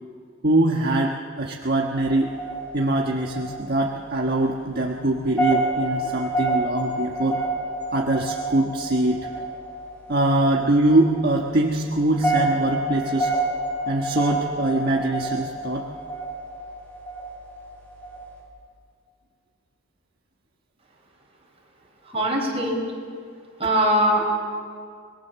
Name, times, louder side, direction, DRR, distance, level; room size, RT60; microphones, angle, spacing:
voice 1, 0.4-2.3 2.7-7.4 7.9-9.2 10.1-13.3 13.9-15.9, right 1 dB, 50° right, 0 dB, 1.4 m, -23 dB
sound 1, 2.0-18.4, right 2 dB, 10° left, 6.7 m, -29 dB
voice 2, 22.1-22.8 23.6-24.3, equal, 30° right, -1 dB, 5.1 m, -21 dB
25.0 x 21.5 x 7.0 m, 2.2 s
head